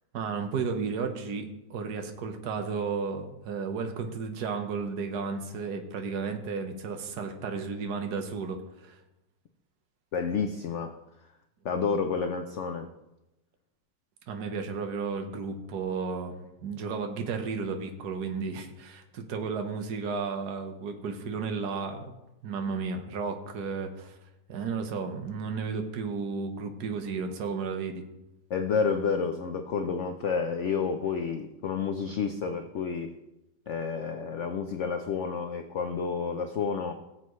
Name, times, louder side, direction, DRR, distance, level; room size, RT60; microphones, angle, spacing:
voice 1, 0.1-9.0 14.3-24.2 24.5-28.0, right 5 dB, 60° right, 5 dB, 1.6 m, -33 dB
voice 2, 10.1-11.0 11.6-12.9 28.5-33.1 33.7-36.9, left 5 dB, 65° left, 6 dB, 0.7 m, -30 dB
19.0 x 7.6 x 3.1 m, 0.93 s
omnidirectional pair, 2.0 m